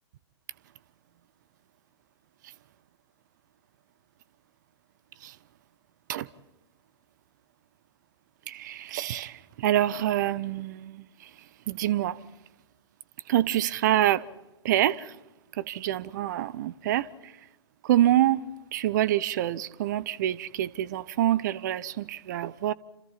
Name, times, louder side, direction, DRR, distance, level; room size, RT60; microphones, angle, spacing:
voice 1, 8.5-11.0 11.7-12.2 13.3-14.2 14.6-15.1 15.6-17.1 17.8-18.4 18.7-22.7, right 13 dB, 40° right, 0.8 m, -26 dB
28.5 x 27.0 x 4.2 m
figure-of-eight pair, 110°, 14 cm